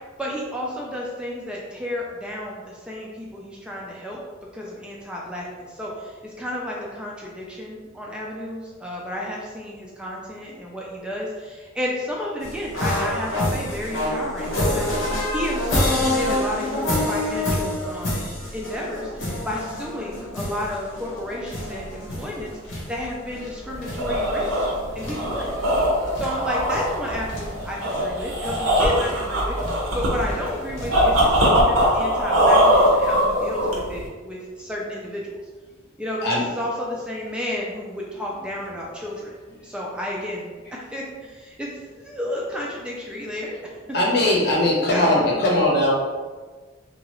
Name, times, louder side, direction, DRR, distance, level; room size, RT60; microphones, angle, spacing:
voice 1, 0.2-4.2 4.5-24.7 24.9-25.5 26.2-35.4 36.0-39.4 39.6-43.8 44.4-45.4, left 1 dB, 5° right, -3 dB, 0.3 m, -32 dB
sound 1, 12.4-31.4, left 1 dB, 80° left, 1.0 m, -28 dB
sound 2, 23.7-34.1, equal, 90° right, 0.7 m, -21 dB
voice 2, 43.9-45.9, left 1 dB, 55° left, -4 dB, 0.8 m, -20 dB
2.8 x 2.4 x 3.0 m, 1.4 s
head